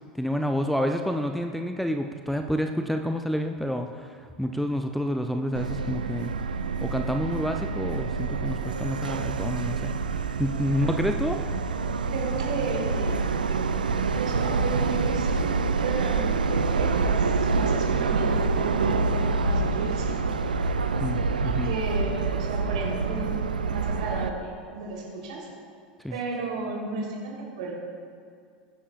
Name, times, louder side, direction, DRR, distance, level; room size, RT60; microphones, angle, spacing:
voice 1, 0.2-6.3 6.8-10.0 10.4-11.4 21.0-21.7 26.0-26.2, equal, ahead, 5 dB, 0.5 m, -28 dB
Subway metro underground, 5.5-24.3, right 4 dB, 75° right, 0.5 m, -26 dB
voice 2, 12.0-13.2 13.5-13.6 13.9-15.4 15.8-20.3 21.4-23.4 23.6-25.5 26.1-27.7, right 3 dB, 60° right, -2 dB, 3.4 m, -34 dB
22.5 x 10.0 x 2.4 m, 2.2 s
figure-of-eight pair, 80°, 5 cm